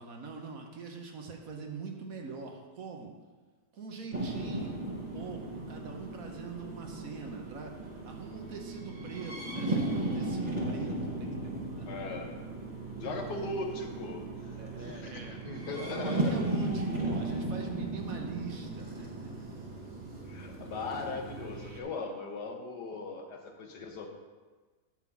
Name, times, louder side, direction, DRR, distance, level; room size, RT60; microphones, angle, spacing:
voice 1, 0.0-3.1 3.7-11.9 13.0-13.5 14.6-15.4 15.9-19.6, right 5 dB, 60° right, 2 dB, 1.3 m, -43 dB
sound 1, 4.1-21.8, right 2 dB, 30° right, 1.1 m, -36 dB
voice 2, 11.9-12.4 13.0-14.6 14.9-16.4 20.2-24.1, left 3 dB, 75° left, 3 dB, 1.6 m, -39 dB
9.4 x 3.8 x 7.1 m, 1.4 s
omnidirectional pair, 1.8 m